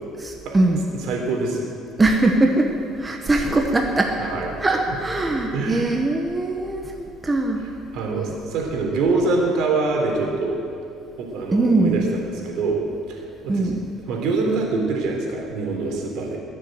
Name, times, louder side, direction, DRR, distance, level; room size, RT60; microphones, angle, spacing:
voice 1, 0.2-0.8 2.0-2.7 3.0-4.1 4.6-7.6 11.5-12.1 13.5-13.8, right 2 dB, 15° right, 2 dB, 1.2 m, -21 dB
voice 2, 0.9-1.7 4.2-4.5 5.5-5.9 7.6-10.6 11.2-12.8 13.1-13.7 14.1-16.4, right 3 dB, 70° right, 0 dB, 3.6 m, -25 dB
21.5 x 7.5 x 7.8 m, 2.7 s
cardioid pair, 125°, 0 cm